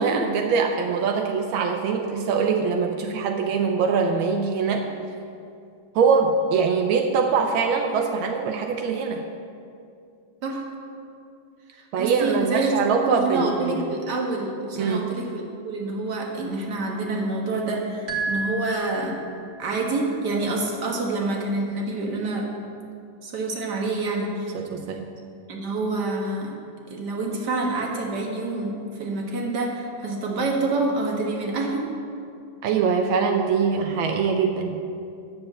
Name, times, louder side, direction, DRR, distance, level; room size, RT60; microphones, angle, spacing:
voice 1, 0.0-4.9 5.9-9.2 11.9-13.8 14.8-15.0 24.5-25.1 32.6-34.8, right 5 dB, 90° right, 3 dB, 1.5 m, -23 dB
voice 2, 11.7-12.7 13.0-19.2 19.6-22.5 23.2-24.5 25.5-26.5 26.9-31.9, right 2 dB, 60° right, 0 dB, 2.1 m, -27 dB
sound 1, 18.1-19.6, right 3 dB, 40° right, 2.0 m, -31 dB
10.0 x 7.1 x 7.9 m, 2.4 s
omnidirectional pair, 2.1 m